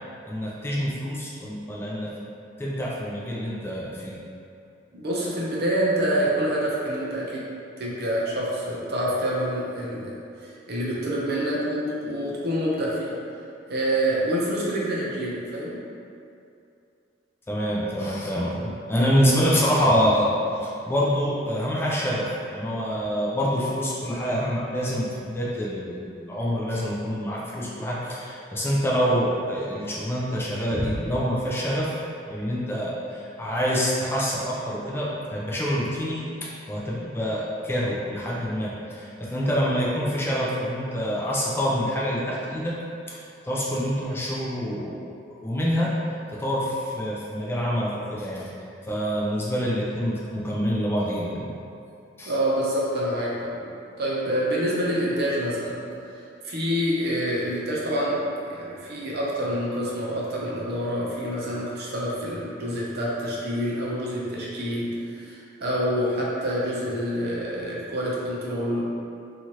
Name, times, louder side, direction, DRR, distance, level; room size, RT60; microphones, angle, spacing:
voice 1, 0.3-2.1 2.6-4.2 17.5-32.0 32.3-42.8 43.1-45.9 46.3-51.5 52.2-52.3, equal, 15° left, -5 dB, 0.3 m, -26 dB
voice 2, 4.9-7.5 7.8-10.1 10.4-13.1 13.7-15.8 52.3-53.7 54.0-55.8 56.4-68.8, equal, 55° right, -5 dB, 0.6 m, -27 dB
2.8 x 2.4 x 3.0 m, 2.5 s
head